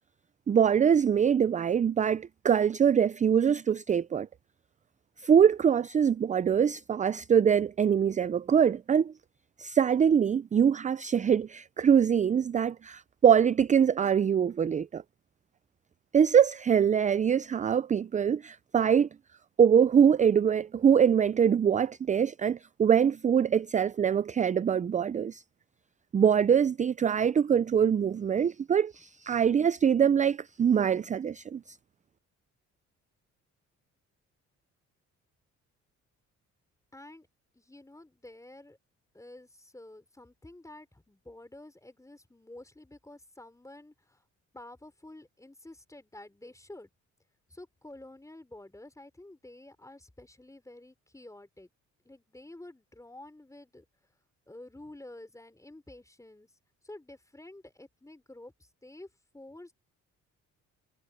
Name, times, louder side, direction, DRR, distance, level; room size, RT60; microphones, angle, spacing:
voice 1, 0.5-4.3 5.2-9.1 9.6-15.0 16.1-19.1 19.6-25.4 26.1-31.8, right 8 dB, 25° right, 0.4 m, -24 dB
voice 2, 36.9-37.3 37.5-38.8 39.1-44.2 44.5-46.9 47.5-51.7 52.0-54.1 54.5-56.5 56.8-59.7, left 1 dB, 10° left, 4.5 m, -50 dB
cardioid pair, 90°, 30 cm